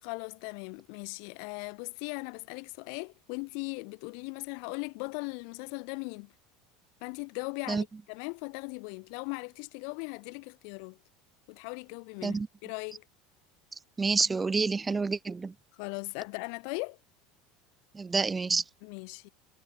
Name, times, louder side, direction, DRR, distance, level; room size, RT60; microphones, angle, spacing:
voice 1, 0.0-6.3 7.0-11.0 11.5-13.0 15.7-17.0 18.8-19.3, left 40 dB or more, 70° left, 5.3 m, -39 dB
voice 2, 14.0-15.5 17.9-18.6, right 4 dB, 20° right, 0.4 m, -28 dB
supercardioid pair, 105°, 0 cm